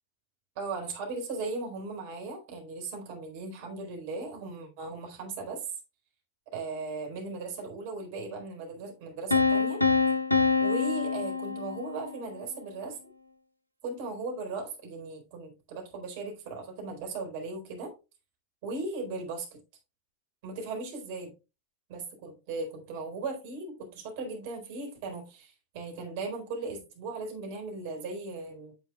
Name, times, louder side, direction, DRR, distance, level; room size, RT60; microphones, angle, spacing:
voice 1, 0.6-5.6 6.5-9.8 10.6-13.0 13.8-17.9 18.6-19.6 20.4-21.3 21.9-28.7, right 3 dB, 50° right, 4.3 m, -37 dB
Piano, 9.3-12.2, left 4 dB, 85° left, 0.9 m, -26 dB
9.6 x 7.1 x 2.3 m
figure-of-eight pair, 90°, 0 cm